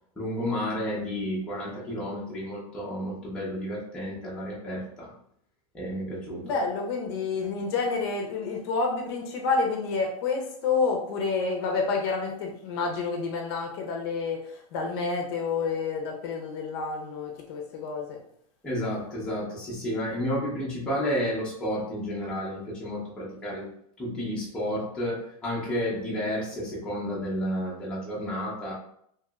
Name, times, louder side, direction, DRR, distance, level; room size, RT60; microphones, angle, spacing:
voice 1, 0.2-5.1 5.7-6.5 18.6-23.7 24.0-28.7, equal, 5° left, -7 dB, 0.6 m, -31 dB
voice 2, 6.4-18.2, left 4 dB, 45° left, 1 dB, 0.6 m, -29 dB
2.9 x 2.8 x 2.3 m, 0.68 s
supercardioid pair, 165°, 19 cm